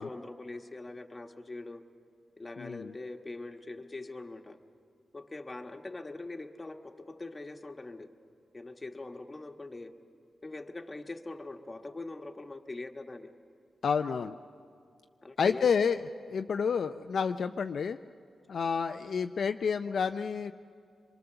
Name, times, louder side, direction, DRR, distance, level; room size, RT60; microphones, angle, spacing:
voice 1, 0.0-1.8 2.4-4.6 5.1-8.1 8.5-10.0 10.4-13.3 15.2-15.7, left 2 dB, 25° left, 5 dB, 1.4 m, -42 dB
voice 2, 2.6-2.9 13.8-14.3 15.4-18.0 18.5-20.5, left 6 dB, 70° left, 7 dB, 0.5 m, -29 dB
24.0 x 23.0 x 6.9 m, 2.4 s
cardioid pair, 65°, 0 cm